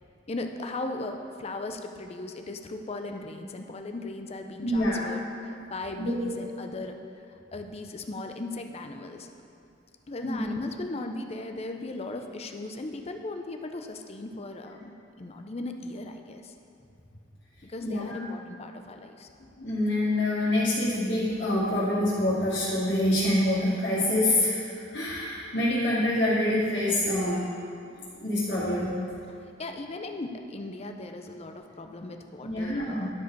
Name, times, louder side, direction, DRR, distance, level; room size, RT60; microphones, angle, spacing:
voice 1, 0.3-5.2 5.5-7.0 7.3-9.3 10.1-16.5 17.6-19.3 29.2-33.1, left 2 dB, 35° left, 5 dB, 0.5 m, -37 dB
voice 2, 4.6-5.0 6.0-6.1 10.2-10.4 17.8-18.2 19.6-24.6 24.9-27.5 28.2-28.9 32.4-33.1, left 1 dB, 60° left, -12 dB, 2.2 m, -26 dB
12.0 x 4.9 x 4.6 m, 2.6 s
head